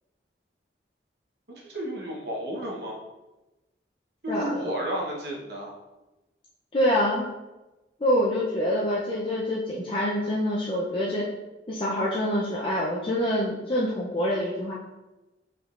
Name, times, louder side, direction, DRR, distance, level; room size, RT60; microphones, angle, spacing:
voice 1, 1.5-3.0 4.2-5.7, right 1 dB, 60° right, -2 dB, 0.9 m, -32 dB
voice 2, 4.3-4.7 6.7-7.3 8.0-11.3 11.7-14.7, equal, 30° left, -5 dB, 0.5 m, -26 dB
5.0 x 3.6 x 2.4 m, 1.1 s
head